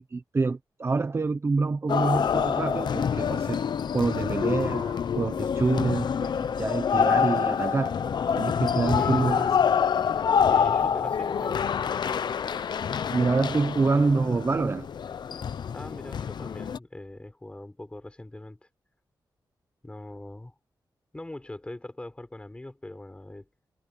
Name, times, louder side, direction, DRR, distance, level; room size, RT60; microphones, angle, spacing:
voice 1, 0.1-3.6 3.9-9.5 13.1-14.9, right 3 dB, 30° right, 1.0 m, -26 dB
sound 1, 1.9-16.8, left 7 dB, 70° left, 0.7 m, -26 dB
voice 2, 9.0-9.3 10.5-11.8 15.7-18.7 19.8-20.5 21.1-23.7, left 1 dB, 15° left, 4.9 m, -42 dB
wide cardioid pair, 150°, 8 cm